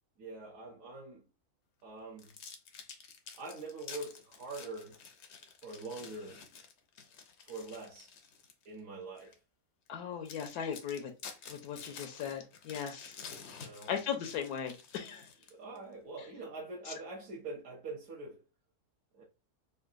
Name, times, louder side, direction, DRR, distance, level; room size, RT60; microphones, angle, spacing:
voice 1, 0.2-1.2 1.8-2.3 3.4-5.0 5.6-6.4 7.4-8.1 8.6-9.4 13.6-13.9 15.5-18.4 19.1-19.2, right 3 dB, 60° right, 1.1 m, -44 dB
sound 1, 2.2-8.6 9.2-9.3 9.9-10.0 10.3-15.8, left 6 dB, 65° left, 0.7 m, -50 dB
voice 2, 9.9-11.1 11.5-13.1 13.9-15.3 16.9-17.0, left 8 dB, 85° left, 1.2 m, -38 dB
3.8 x 2.3 x 2.5 m
omnidirectional pair, 1.7 m